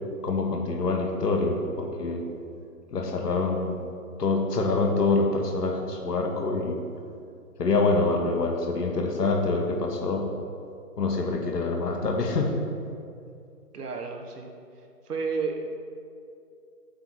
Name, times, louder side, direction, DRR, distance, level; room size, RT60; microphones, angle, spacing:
voice 1, 0.2-2.2 2.9-3.8 4.2-6.8 7.6-10.2 11.0-12.5, left 3 dB, 80° left, 2 dB, 1.3 m, -25 dB
voice 2, 13.7-14.5 15.0-15.6, right 5 dB, 75° right, 3 dB, 1.2 m, -31 dB
8.1 x 3.9 x 6.2 m, 2.5 s
hypercardioid pair, 180°, 47 cm